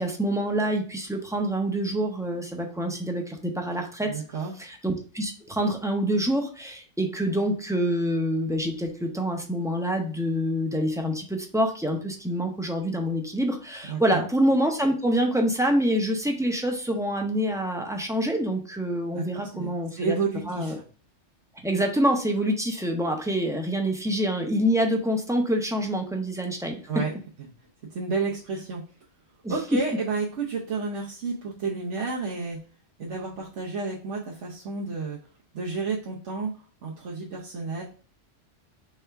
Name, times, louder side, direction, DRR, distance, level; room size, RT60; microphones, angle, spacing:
voice 1, 0.0-4.1 4.6-20.2 20.5-20.8 21.6-26.8 29.4-29.6, equal, 5° right, 2 dB, 0.4 m, -26 dB
voice 2, 4.1-4.5 13.9-14.3 19.1-20.8 26.9-27.5 27.9-28.8 29.5-32.6 33.0-35.2 35.5-36.5 36.8-37.8, right 4 dB, 80° right, -5 dB, 1.1 m, -31 dB
3.5 x 3.3 x 4.4 m, 0.41 s
omnidirectional pair, 1.2 m